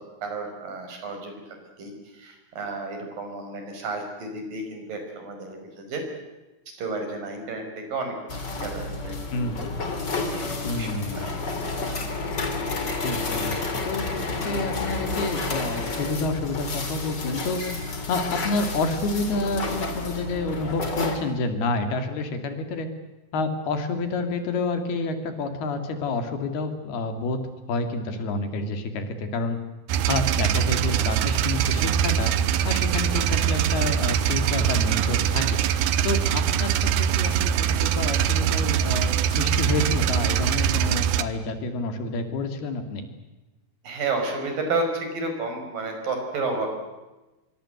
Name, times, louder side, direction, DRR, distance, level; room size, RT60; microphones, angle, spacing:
voice 1, 0.0-1.4 1.8-6.0 6.8-9.1 10.3-11.3 43.8-46.8, right 3 dB, 65° right, 4 dB, 7.0 m, -31 dB
sound 1, 8.3-21.2, left 3 dB, 30° left, 3.3 m, -30 dB
voice 2, 9.3-9.8 10.6-11.3 13.0-13.6 13.9-14.2 14.4-17.6 18.1-22.9 23.3-29.6 30.1-32.3 32.6-35.6 36.0-43.1, left 3 dB, 85° left, 7 dB, 4.7 m, -29 dB
sound 2, 29.9-41.2, right 9 dB, 85° right, 3.1 m, -23 dB
25.5 x 24.0 x 8.1 m, 1.1 s
omnidirectional pair, 4.4 m